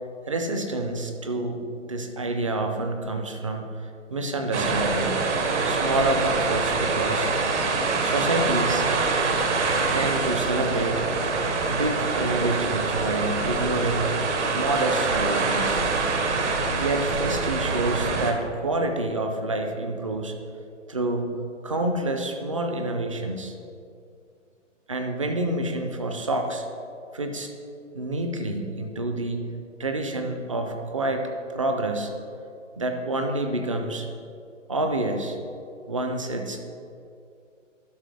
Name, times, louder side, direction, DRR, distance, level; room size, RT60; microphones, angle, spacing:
voice 1, 0.3-3.7 4.1-5.1 5.6-7.3 8.0-8.9 9.9-11.0 11.7-14.1 14.5-15.8 16.8-20.4 20.9-21.3 21.6-23.5 24.9-26.7 27.1-27.5 27.9-29.4 29.8-32.1 32.8-34.1 34.7-35.4 35.9-36.6, right 2 dB, 25° right, 5 dB, 0.4 m, -28 dB
sound 1, 4.5-18.3, right 4 dB, 65° right, 1.2 m, -25 dB
11.5 x 5.9 x 3.4 m, 2.5 s
hypercardioid pair, 160°, 38 cm